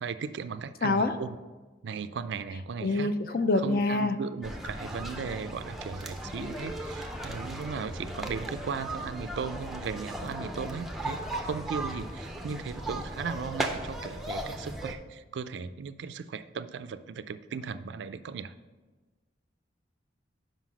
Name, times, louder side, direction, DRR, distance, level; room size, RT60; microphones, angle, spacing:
voice 1, 0.0-1.4 1.8-3.2 3.6-18.5, right 5 dB, 70° right, 13 dB, 0.4 m, -37 dB
voice 2, 0.8-1.1 2.8-4.2, left 2 dB, 50° left, 9 dB, 0.5 m, -26 dB
sound 1, 4.4-15.0, right 1 dB, ahead, 0.5 m, -37 dB
5.7 x 5.2 x 6.1 m, 1.3 s
head